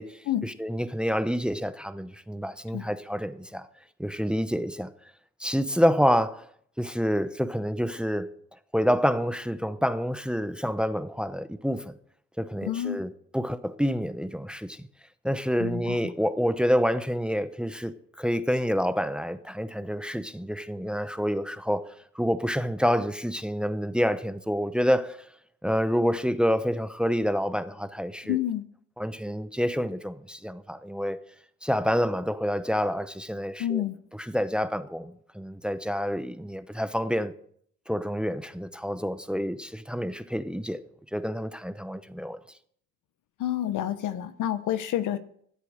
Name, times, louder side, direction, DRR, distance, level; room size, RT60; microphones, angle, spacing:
voice 1, 0.4-3.7 4.0-4.9 5.4-6.5 6.8-8.3 8.7-11.9 12.4-14.8 15.2-25.2 25.6-28.4 29.0-31.2 31.6-33.8 34.3-37.3 37.9-40.8 41.1-42.4, equal, 5° right, 0.8 m, -28 dB
voice 2, 12.6-13.0 15.6-16.0 28.2-28.6 33.6-34.0 43.4-45.2, left 11 dB, 80° left, 1.1 m, -28 dB
13.5 x 8.2 x 6.5 m
cardioid pair, 90°, 30 cm